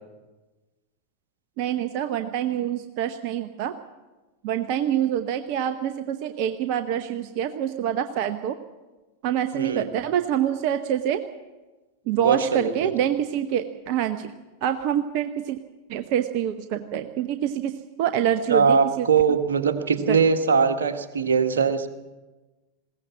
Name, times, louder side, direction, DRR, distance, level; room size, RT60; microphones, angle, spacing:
voice 1, 1.6-3.8 4.4-8.6 9.2-11.2 12.1-14.3 14.6-15.6 15.9-19.1 20.1-20.2, right 10 dB, 45° right, 9 dB, 0.9 m, -26 dB
voice 2, 9.5-9.9 12.2-12.9 18.5-21.9, right 5 dB, 65° right, 6 dB, 1.6 m, -21 dB
20.5 x 17.0 x 7.4 m, 1.2 s
figure-of-eight pair, 90°, 0 cm